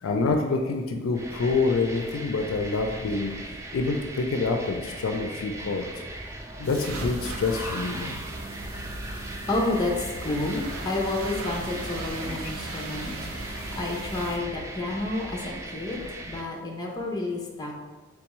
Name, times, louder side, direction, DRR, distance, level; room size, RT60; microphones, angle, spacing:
voice 1, 0.0-3.3 3.7-5.8 6.6-8.1 13.6-13.7, left 3 dB, 70° left, 4 dB, 0.4 m, -27 dB
sound 1, 1.1-16.4, right 1 dB, 15° right, 0.3 m, -39 dB
sound 2, 6.6-14.4, right 2 dB, 85° right, 0.6 m, -37 dB
voice 2, 9.1-13.1 13.4-17.7, left 2 dB, 20° left, 0 dB, 0.6 m, -30 dB
3.5 x 3.4 x 3.0 m, 1.3 s
head